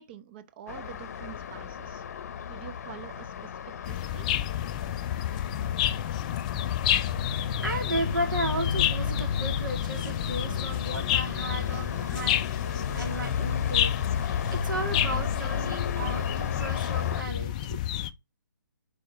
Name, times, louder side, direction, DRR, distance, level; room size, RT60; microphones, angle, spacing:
voice 1, 0.0-2.0 2.5-3.5 3.8-4.3, right 10 dB, 30° right, 0.7 m, -46 dB
Traffic noise roadway noise, 0.7-17.2, left 7 dB, 50° left, 0.8 m, -33 dB
sound 1, 3.8-18.1, left 12 dB, 20° left, 0.3 m, -30 dB
voice 2, 7.6-17.8, right 2 dB, 75° right, 2.5 m, -34 dB
4.9 x 4.9 x 4.7 m
hypercardioid pair, 155°, 11 cm